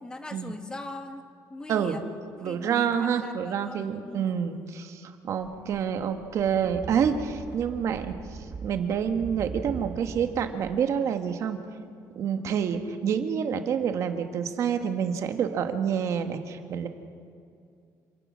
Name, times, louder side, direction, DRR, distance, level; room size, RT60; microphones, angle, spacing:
voice 1, 0.0-1.2 1.5-2.2 2.4-4.4, left 2 dB, 10° left, 7 dB, 1.2 m, -40 dB
voice 2, 1.7-2.1 2.4-8.1 8.6-11.6 12.1-16.9, right 7 dB, 50° right, 7 dB, 1.3 m, -28 dB
sound 1, 5.4-10.8, right 5 dB, 30° right, 0.9 m, -41 dB
27.5 x 17.0 x 6.2 m, 2.4 s
cardioid pair, 165°, 7 cm